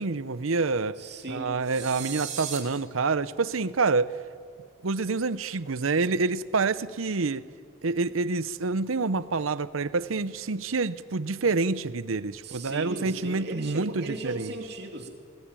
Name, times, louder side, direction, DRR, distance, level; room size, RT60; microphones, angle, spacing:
voice 1, 0.0-1.0 1.3-4.1 4.8-7.4 7.8-14.6, right 4 dB, 85° right, 0.7 m, -27 dB
voice 2, 1.0-1.5 12.4-15.1, right 2 dB, 50° right, 2.8 m, -37 dB
sound 1, 1.6-2.6, right 8 dB, 35° right, 3.4 m, -36 dB
20.5 x 20.5 x 9.0 m
head